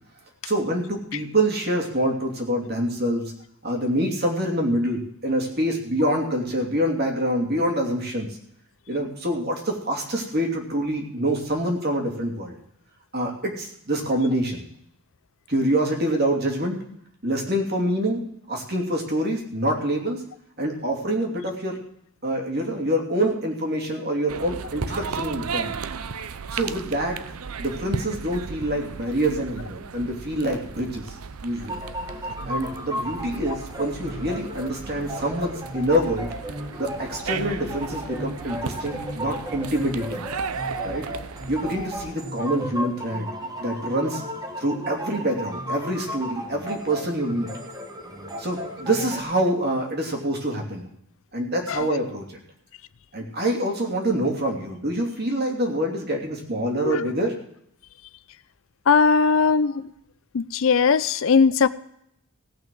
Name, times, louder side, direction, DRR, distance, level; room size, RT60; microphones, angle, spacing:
voice 1, 0.4-3.2 3.6-8.3 8.9-12.5 13.1-14.6 15.5-16.8 17.2-18.2 18.5-20.2 20.6-21.8 22.2-25.7 26.5-27.2 27.6-31.1 31.4-31.7 32.4-36.3 36.8-40.3 40.8-41.1 41.5-43.3 43.6-44.2 44.6-47.5 48.4-50.9 51.3-52.4 53.1-57.3 59.7-59.8, right 1 dB, 45° right, 1 dB, 2.8 m, -26 dB
sound 1, 24.3-42.1, right 5 dB, 90° right, 0.7 m, -35 dB
sound 2, 31.7-49.2, equal, 15° right, 1.5 m, -35 dB
voice 2, 58.9-59.9 60.3-61.7, left 5 dB, 65° left, 15 dB, 0.5 m, -19 dB
16.5 x 5.9 x 7.8 m, 0.72 s
head